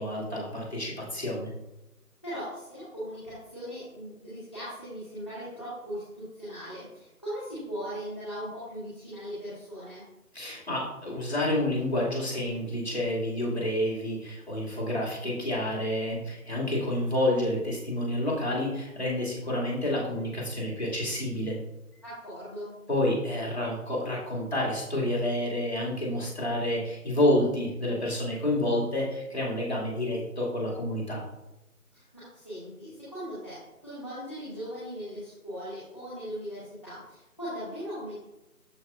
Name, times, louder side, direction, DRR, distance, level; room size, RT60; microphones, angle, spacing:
voice 1, 0.0-1.5 10.3-21.6 22.9-31.2, left 1 dB, 45° left, -4 dB, 2.4 m, -29 dB
voice 2, 2.2-10.0 22.0-22.7 31.9-38.1, equal, 20° left, -13 dB, 1.7 m, -39 dB
13.0 x 5.1 x 2.5 m, 0.96 s
figure-of-eight pair, 170°, 46 cm